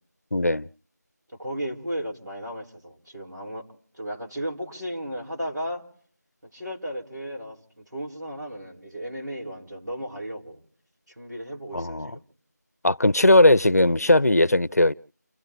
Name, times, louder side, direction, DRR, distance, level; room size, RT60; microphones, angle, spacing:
voice 1, 0.3-0.7 11.7-12.1 12.8-14.9, left 1 dB, 60° left, 0.7 m, -18 dB
voice 2, 1.4-3.7 4.0-5.8 6.5-10.6 11.2-12.2, equal, 80° right, 4.2 m, -34 dB
29.5 x 16.5 x 2.7 m
figure-of-eight pair, 175°, 10 cm